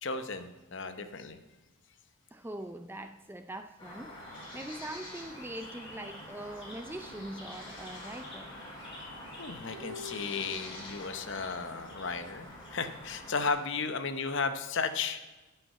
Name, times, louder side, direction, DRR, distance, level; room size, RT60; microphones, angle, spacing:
voice 1, 0.0-1.4 9.4-15.2, left 4 dB, 55° left, 9 dB, 0.8 m, -34 dB
voice 2, 2.3-8.5, right 1 dB, 10° right, 8 dB, 0.4 m, -42 dB
sound 1, 3.8-13.5, left 1 dB, 20° left, 3.5 m, -46 dB
sound 2, 9.7-11.4 11.6-11.7, left 4 dB, 35° right, 3.6 m, -47 dB
11.0 x 5.7 x 8.4 m, 1.1 s
head